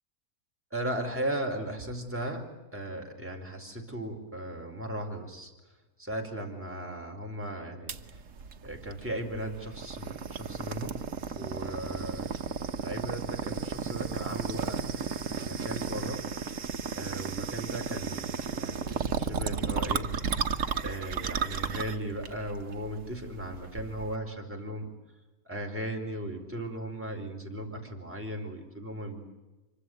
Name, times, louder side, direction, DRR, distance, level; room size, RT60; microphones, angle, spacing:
voice 1, 0.7-5.5 6.0-8.2 8.6-11.0 11.4-12.4 12.8-16.3 16.9-20.1 20.8-24.9 25.4-29.2, right 1 dB, 10° right, 1 dB, 4.6 m, -37 dB
Fine afternoon, 7.9-24.2, right 6 dB, 55° right, 1.5 m, -34 dB
26.0 x 24.5 x 8.1 m, 1.1 s
omnidirectional pair, 1.6 m